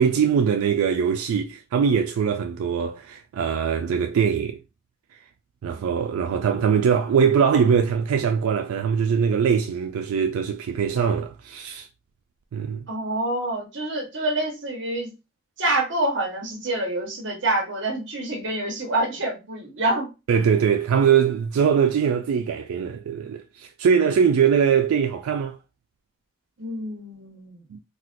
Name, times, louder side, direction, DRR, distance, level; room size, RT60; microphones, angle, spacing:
voice 1, 0.0-4.6 5.6-11.9 12.5-12.9 20.3-25.6 27.7-27.8, right 7 dB, 85° right, 0.3 m, -22 dB
voice 2, 12.9-15.1 15.6-20.1 26.6-27.6, right 2 dB, 55° right, 1.1 m, -27 dB
4.1 x 2.1 x 2.5 m
head